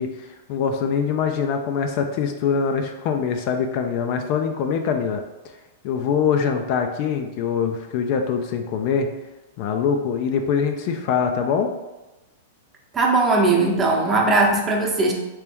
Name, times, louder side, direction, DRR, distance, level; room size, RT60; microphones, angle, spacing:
voice 1, 0.0-5.2 5.8-9.1 9.6-11.7, left 6 dB, 50° left, 5 dB, 0.4 m, -23 dB
voice 2, 12.9-15.1, right 3 dB, 20° right, -1 dB, 0.8 m, -19 dB
3.2 x 3.0 x 3.5 m, 1.0 s
hypercardioid pair, 110°, 0 cm